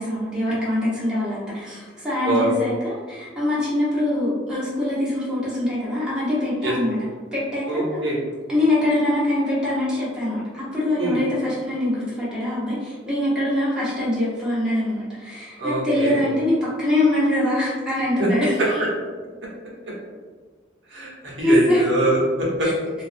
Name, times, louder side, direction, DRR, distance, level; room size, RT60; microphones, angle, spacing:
voice 1, 0.0-7.0 7.3-8.0 8.5-18.8 21.4-21.8 22.6-22.7, left 1 dB, 5° right, -10 dB, 0.8 m, -23 dB
voice 2, 7.7-8.2 11.0-11.2 15.6-16.2 18.2-18.3 18.6-18.7 20.9-22.7, right 1 dB, 90° right, -5 dB, 0.9 m, -23 dB
2.4 x 2.3 x 2.5 m, 1.5 s
head